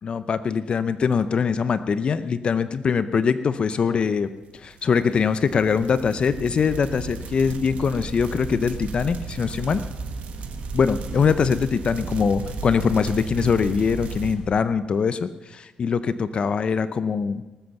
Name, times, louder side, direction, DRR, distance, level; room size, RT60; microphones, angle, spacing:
voice 1, 0.0-9.8 10.7-17.4, left 6 dB, 45° left, 12 dB, 0.6 m, -23 dB
sound 1, 4.5-14.4, right 5 dB, 75° right, 1.6 m, -35 dB
sound 2, 7.1-14.5, right 2 dB, 10° right, 1.2 m, -41 dB
19.5 x 7.9 x 7.0 m, 1.1 s
cardioid pair, 110°, 2 cm